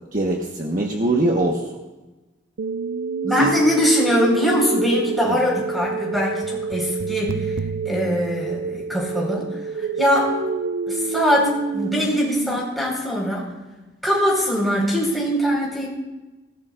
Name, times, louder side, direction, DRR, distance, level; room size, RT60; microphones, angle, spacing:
voice 1, 0.1-1.8 3.4-3.5 5.3-5.4, right 1 dB, 45° right, -1 dB, 1.4 m, -22 dB
sound 1, 2.6-12.6, right 4 dB, 85° right, 0.5 m, -27 dB
voice 2, 3.2-7.5 7.8-9.5 9.7-10.3 10.9-13.5 14.0-15.9, equal, ahead, -4 dB, 5.0 m, -22 dB
24.0 x 17.5 x 2.6 m, 1.1 s
head